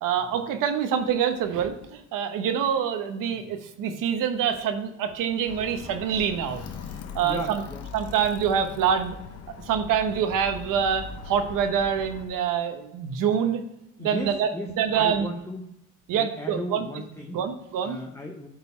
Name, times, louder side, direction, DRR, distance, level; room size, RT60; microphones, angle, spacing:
voice 1, 0.0-6.6 7.1-7.6 7.9-9.2 9.7-13.6 14.0-15.3 16.1-16.9 17.3-18.0, right 8 dB, 80° right, 7 dB, 1.0 m, -26 dB
Alarm, 5.5-12.3, left 6 dB, 50° left, 0.8 m, -40 dB
voice 2, 7.2-7.9 14.0-15.7 16.1-17.4 17.8-18.5, left 1 dB, 10° left, 2 dB, 0.7 m, -36 dB
10.5 x 4.0 x 4.4 m, 0.85 s
cardioid pair, 130°, 32 cm